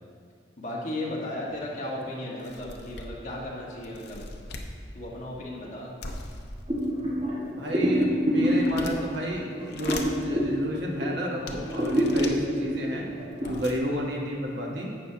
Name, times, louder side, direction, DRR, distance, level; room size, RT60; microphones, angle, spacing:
voice 1, 0.6-4.2 4.9-5.9 13.4-13.6, left 1 dB, 40° left, -4 dB, 1.6 m, -35 dB
sound 1, 1.5-1.6 2.0-2.1 2.4-3.3 3.8-4.7 6.0-7.1 7.7-9.2 9.6-10.3 10.9-11.0 11.5-12.4 13.0-13.1 13.3-13.8, left 3 dB, 60° left, 0.8 m, -40 dB
sound 2, 6.7-11.3 11.6-13.5, equal, 30° right, 2.0 m, -27 dB
voice 2, 7.5-13.1 13.5-14.9, equal, 65° right, -1 dB, 1.3 m, -31 dB
11.5 x 8.1 x 2.9 m, 2.1 s
head